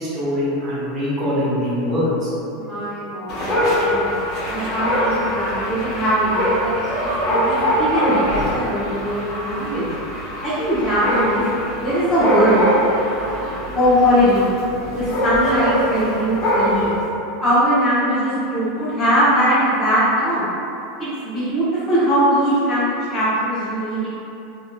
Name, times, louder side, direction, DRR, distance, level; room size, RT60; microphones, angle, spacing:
voice 1, 0.0-2.3, left 1 dB, 30° right, -9 dB, 1.0 m, -22 dB
voice 2, 2.5-4.1 4.5-9.9 10.4-11.4 11.8-12.6 13.7-14.5 14.9-17.0 17.4-20.5 21.0-24.1, equal, 20° left, -13 dB, 0.9 m, -20 dB
Dog, 3.3-17.0, equal, 50° left, 0.9 m, -23 dB
2.7 x 2.5 x 2.2 m, 2.9 s
supercardioid pair, 120°, 0 cm